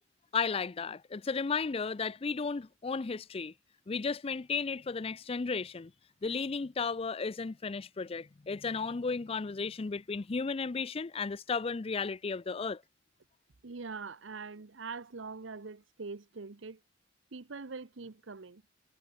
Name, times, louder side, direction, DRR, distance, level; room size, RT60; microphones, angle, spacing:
voice 1, 0.3-3.5 3.9-5.9 6.2-12.8, left 4 dB, 30° left, 0.4 m, -34 dB
voice 2, 13.6-16.8 17.3-18.6, right 4 dB, 75° right, 0.9 m, -43 dB
head